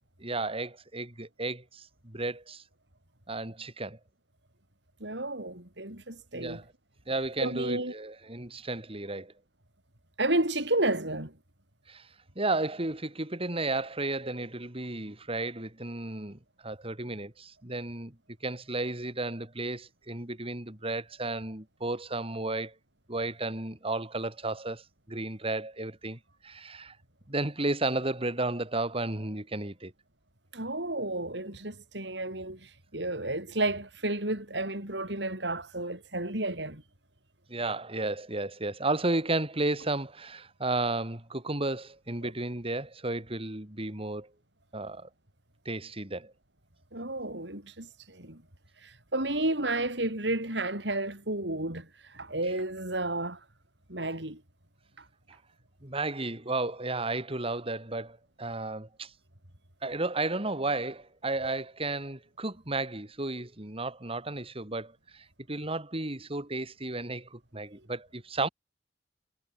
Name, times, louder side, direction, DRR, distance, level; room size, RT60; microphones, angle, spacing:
voice 1, 0.2-2.6 3.3-4.0 6.3-6.6 7.1-9.3 11.9-12.1 12.3-18.1 18.4-22.7 23.1-24.8 25.1-27.0 27.3-29.9 37.5-44.3 44.7-45.1 45.6-46.3 55.8-59.1 59.8-68.5, right 2 dB, 35° right, 3.2 m, -33 dB
voice 2, 5.0-6.6 7.4-7.9 10.2-11.4 30.5-36.8 42.2-42.3 46.9-48.4 48.8-53.4 53.9-54.4, right 2 dB, 70° right, 7.8 m, -32 dB
head